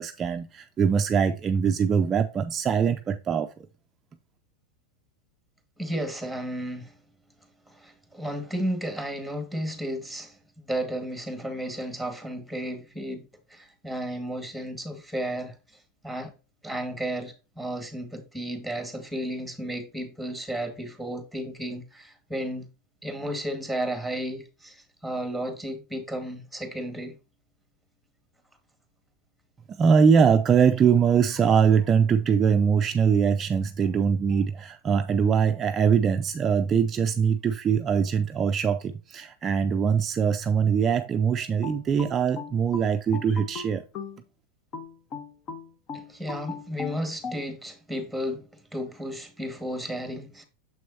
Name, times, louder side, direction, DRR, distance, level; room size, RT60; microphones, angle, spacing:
voice 1, 0.0-3.5 29.7-43.9, right 6 dB, 25° right, 0.5 m, -22 dB
voice 2, 5.8-7.0 7.7-16.3 16.6-22.7 23.0-27.2 45.9-50.5, equal, 5° left, 1.9 m, -33 dB
sound 1, 41.6-44.2 44.7-47.4, left 5 dB, 40° left, 1.2 m, -38 dB
7.0 x 6.2 x 2.7 m
hypercardioid pair, 115°, 0 cm